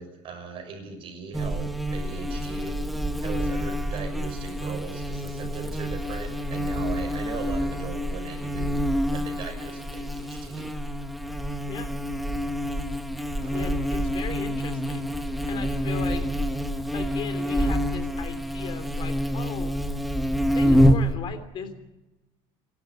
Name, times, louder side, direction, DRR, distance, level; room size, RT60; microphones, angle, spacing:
voice 1, 0.0-2.9 3.2-8.8 9.1-10.7 13.4-13.7, right 5 dB, 40° right, 5 dB, 6.3 m, -39 dB
Buzz, 1.3-21.1, equal, ahead, 1.5 m, -27 dB
voice 2, 13.5-15.0 15.5-16.2 16.9-19.7 20.3-21.8, left 6 dB, 40° left, 9 dB, 3.3 m, -37 dB
27.5 x 12.5 x 9.4 m, 1.0 s
cardioid pair, 150°, 13 cm